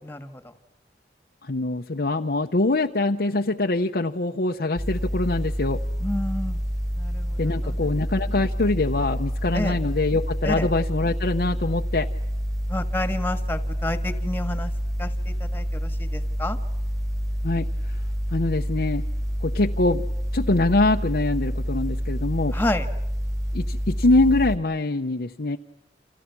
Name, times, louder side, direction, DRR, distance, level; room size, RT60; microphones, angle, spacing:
voice 1, 0.0-0.4 6.0-6.6 6.9-7.9 9.5-9.8 10.4-10.7 12.7-14.7 15.0-16.6 22.5-22.9, left 1 dB, 10° left, 8 dB, 1.8 m, -30 dB
voice 2, 1.4-5.8 7.4-12.1 17.4-17.7 18.3-19.0 19.4-20.0 20.3-22.6 23.5-25.6, left 2 dB, 60° left, 2 dB, 0.9 m, -23 dB
sound 1, 4.8-24.6, equal, 20° right, 3.3 m, -28 dB
29.5 x 28.0 x 6.1 m, 0.81 s
head